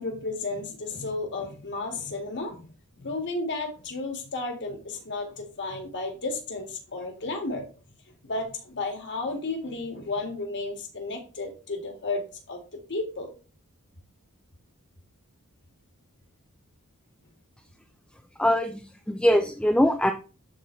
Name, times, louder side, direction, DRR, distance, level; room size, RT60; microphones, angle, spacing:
voice 1, 0.0-2.7 3.0-7.7 8.2-12.6 12.9-13.3, left 3 dB, 55° left, 3 dB, 1.9 m, -33 dB
voice 2, 18.4-18.8 19.1-20.1, equal, 5° left, 5 dB, 0.5 m, -22 dB
11.0 x 4.0 x 3.2 m, 0.35 s
head